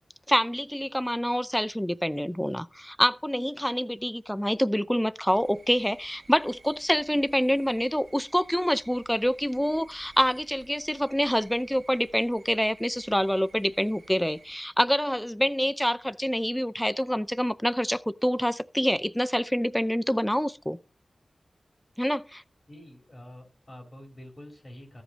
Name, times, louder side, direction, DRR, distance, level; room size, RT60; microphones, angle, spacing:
voice 1, 0.3-20.8 22.0-22.4, equal, 5° left, 0.5 m, -26 dB
sound 1, 5.3-14.6, right 4 dB, 70° right, 2.1 m, -55 dB
voice 2, 22.7-25.0, left 1 dB, 30° left, 4.6 m, -47 dB
14.0 x 5.1 x 5.2 m
wide cardioid pair, 75°, 0 cm